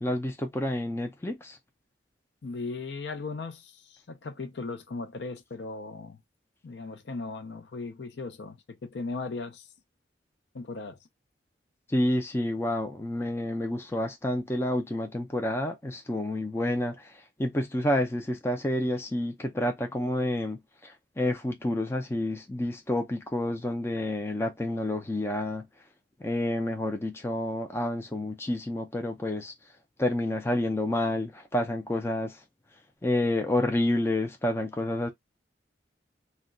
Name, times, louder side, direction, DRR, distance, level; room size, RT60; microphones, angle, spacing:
voice 1, 0.0-1.6 11.9-25.7 26.2-29.7 30.0-32.4 33.0-35.1, left 1 dB, 15° left, 0.4 m, -29 dB
voice 2, 2.4-6.2 6.6-9.7 10.5-11.0, left 3 dB, 65° left, 0.5 m, -37 dB
2.2 x 2.2 x 3.6 m
head